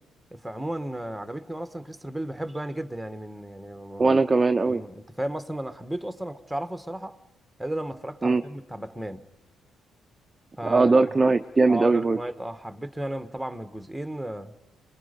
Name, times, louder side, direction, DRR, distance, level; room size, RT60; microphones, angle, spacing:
voice 1, 0.3-4.2 4.7-7.2 7.6-9.3 10.6-10.9 11.7-14.5, right 1 dB, 5° right, 1.4 m, -34 dB
voice 2, 4.0-4.8 8.2-8.4 10.7-12.2, right 3 dB, 25° right, 0.7 m, -20 dB
28.0 x 21.5 x 5.2 m
cardioid pair, 90°, 0 cm